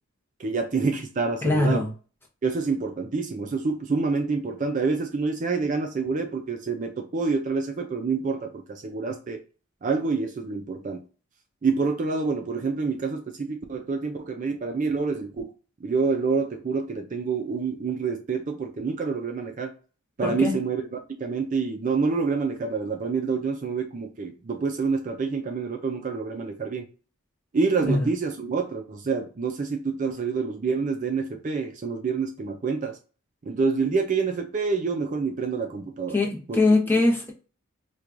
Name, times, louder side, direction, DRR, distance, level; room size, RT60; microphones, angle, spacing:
voice 1, 0.4-1.8 2.4-9.4 9.8-11.0 11.6-15.5 15.8-19.7 20.2-20.8 21.2-26.9 27.5-33.0 33.4-36.2 36.5-36.6 36.9-37.0, right 4 dB, 35° right, 0.4 m, -27 dB
voice 2, 1.4-1.9 20.2-20.5 27.8-28.1 36.1-37.3, left 2 dB, 10° left, 0.7 m, -22 dB
4.5 x 2.3 x 2.5 m
head